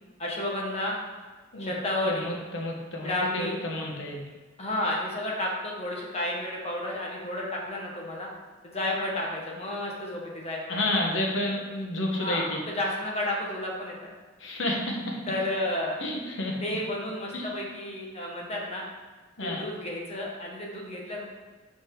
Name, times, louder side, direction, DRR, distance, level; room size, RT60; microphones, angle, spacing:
voice 1, 0.2-1.0 1.6-2.3 2.9-3.6 4.6-8.3 8.6-10.8 12.1-14.1 15.3-16.0 16.6-18.8 19.4-21.2, left 1 dB, 35° left, -2 dB, 1.3 m, -31 dB
voice 2, 2.1-4.2 10.7-12.6 14.4-15.2 16.0-16.6 17.3-17.5 19.4-19.6, left 1 dB, 85° left, 0 dB, 1.2 m, -30 dB
5.9 x 5.2 x 3.8 m, 1.3 s
head